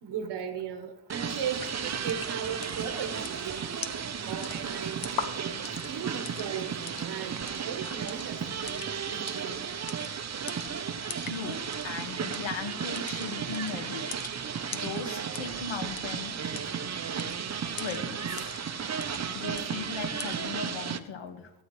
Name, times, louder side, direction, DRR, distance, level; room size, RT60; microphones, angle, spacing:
voice 1, 0.0-3.7 4.2-9.7, right 7 dB, 60° right, 1.3 m, -37 dB
sound 1, 1.1-21.0, right 7 dB, 35° right, 0.8 m, -34 dB
sound 2, 1.5-20.5, left 7 dB, 50° left, 1.0 m, -45 dB
voice 2, 11.3-14.1 14.7-16.3 17.7-18.5 19.3-21.5, left 6 dB, 75° left, 1.7 m, -38 dB
16.5 x 8.8 x 3.2 m
cardioid pair, 85°, 46 cm